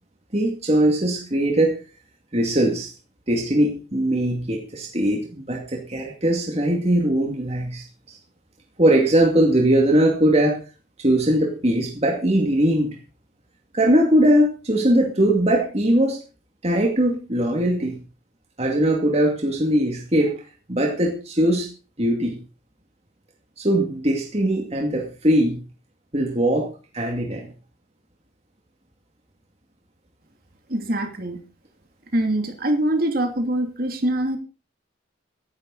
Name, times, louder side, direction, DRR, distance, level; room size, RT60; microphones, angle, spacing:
voice 1, 0.3-1.7 2.3-2.9 3.3-7.8 8.8-10.6 11.0-13.0 13.7-16.2 16.6-18.0 18.6-20.4 20.7-21.7 22.0-22.4 23.6-25.6 26.1-26.7 26.9-27.5, right 1 dB, 30° right, 1 dB, 2.4 m, -20 dB
voice 2, 30.7-31.4 32.1-34.4, right 1 dB, 50° right, 5 dB, 2.8 m, -23 dB
16.5 x 11.0 x 4.1 m, 0.35 s
head